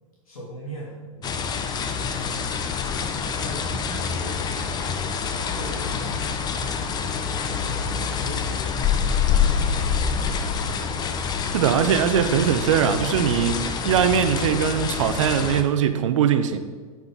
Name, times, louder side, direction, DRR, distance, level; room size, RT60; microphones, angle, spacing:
voice 1, 0.2-1.8 2.1-2.5 2.9-6.2 6.6-10.7, right 1 dB, 80° left, -6 dB, 2.9 m, -41 dB
sound 1, 1.2-15.6, left 6 dB, 25° left, 0.8 m, -26 dB
voice 2, 11.5-16.6, right 8 dB, 60° right, 10 dB, 0.9 m, -21 dB
9.2 x 8.7 x 4.0 m, 1.5 s
hypercardioid pair, 105°, 18 cm